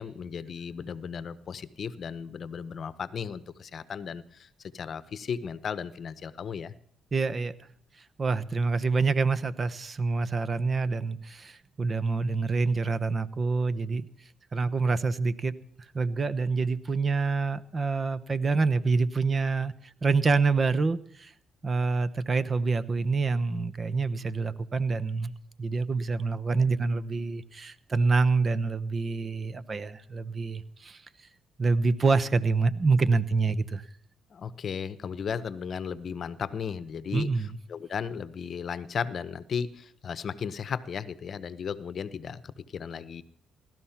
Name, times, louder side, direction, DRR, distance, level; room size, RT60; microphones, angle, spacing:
voice 1, 0.0-4.5 4.7-6.7 34.3-43.2, left 6 dB, 55° left, 14 dB, 0.8 m, -35 dB
voice 2, 7.1-7.5 8.2-14.1 14.5-15.5 15.9-19.7 20.0-21.3 21.6-25.3 25.6-31.0 31.6-33.8 37.1-37.6, right 4 dB, 35° right, 14 dB, 0.9 m, -26 dB
17.5 x 12.5 x 5.8 m, 0.67 s
cardioid pair, 90°, 0 cm